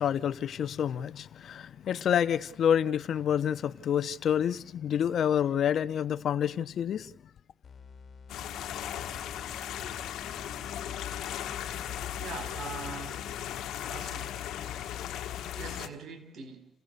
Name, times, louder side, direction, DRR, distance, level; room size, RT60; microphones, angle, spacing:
voice 1, 0.0-7.1, left 9 dB, 65° left, 0.7 m, -28 dB
sound 1, 7.6-13.7, left 5 dB, 45° left, 2.7 m, -50 dB
sound 2, 8.3-15.9, left 10 dB, 80° left, 1.5 m, -37 dB
voice 2, 12.2-13.3 13.9-14.3 14.6-14.8 15.5-16.7, right 5 dB, 65° right, 4.2 m, -42 dB
28.5 x 16.5 x 6.7 m
cardioid pair, 90°, 0 cm